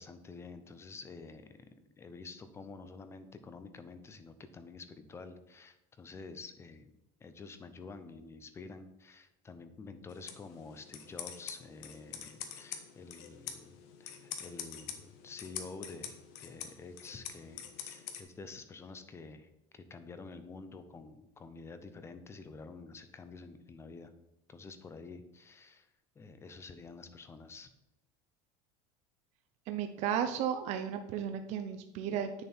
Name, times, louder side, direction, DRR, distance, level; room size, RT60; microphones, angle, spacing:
voice 1, 0.0-6.9 7.2-19.5 19.7-24.1 24.5-25.9 26.2-27.7, left 4 dB, 15° left, 10 dB, 0.6 m, -49 dB
sound 1, 10.1-18.2, left 9 dB, 75° left, 1.2 m, -46 dB
voice 2, 29.7-32.4, right 9 dB, 50° right, 7 dB, 0.6 m, -34 dB
8.5 x 6.7 x 4.4 m, 0.90 s
cardioid pair, 155°, 15 cm